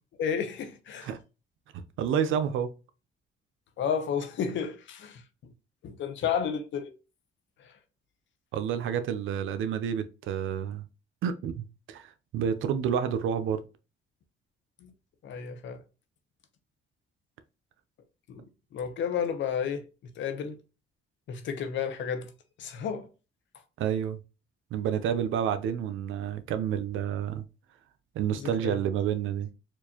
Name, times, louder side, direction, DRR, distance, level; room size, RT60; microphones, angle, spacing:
voice 1, 0.2-1.1 3.8-5.2 5.8-6.9 14.8-14.9 15.2-15.8 18.3-18.4 18.7-19.9 20.2-20.6 21.3-22.3 22.6-23.1 28.4-28.8, left 7 dB, 70° left, 0.8 m, -31 dB
voice 2, 1.7-2.7 8.5-10.8 11.2-13.6 23.8-24.2 24.7-27.4 28.1-29.5, right 8 dB, 80° right, 0.6 m, -29 dB
4.5 x 2.5 x 2.8 m
cardioid pair, 90°, 20 cm